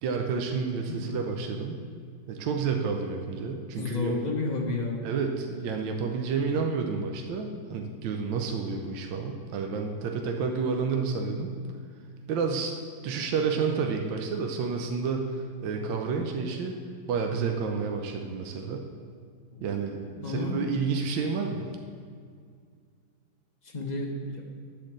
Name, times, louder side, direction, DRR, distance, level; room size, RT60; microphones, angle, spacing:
voice 1, 0.0-1.8 2.3-4.1 5.0-11.5 12.3-12.8 13.0-16.8 17.1-18.8 19.6-21.7, right 5 dB, 75° right, 3 dB, 1.4 m, -30 dB
voice 2, 3.8-5.0 20.2-20.6 23.7-24.4, left 2 dB, 30° left, -1 dB, 0.9 m, -30 dB
9.7 x 4.5 x 7.4 m, 2.1 s
omnidirectional pair, 2.1 m